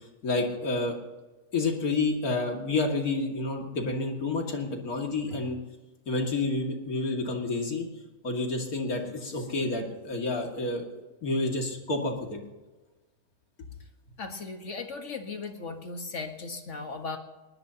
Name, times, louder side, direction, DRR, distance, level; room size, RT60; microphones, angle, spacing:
voice 1, 0.2-0.9 1.5-5.6 6.1-7.9 8.2-10.8 11.2-12.4, left 3 dB, 90° left, 1 dB, 2.8 m, -29 dB
voice 2, 14.2-17.2, left 4 dB, 55° left, 5 dB, 1.8 m, -37 dB
20.0 x 19.5 x 2.9 m, 1.2 s
omnidirectional pair, 1.5 m